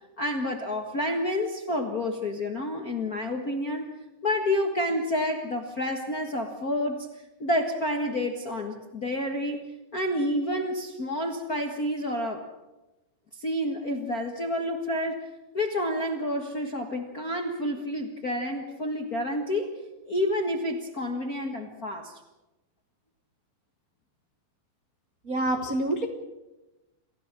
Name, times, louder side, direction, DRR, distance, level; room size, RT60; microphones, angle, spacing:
voice 1, 0.2-3.9 4.2-7.1 7.4-9.6 9.9-12.4 13.4-15.3 15.5-19.7 20.1-22.2, left 1 dB, 50° left, 3 dB, 1.1 m, -29 dB
voice 2, 25.3-26.1, right 1 dB, 60° right, 5 dB, 0.9 m, -26 dB
28.0 x 15.0 x 7.4 m, 1.0 s
omnidirectional pair, 4.2 m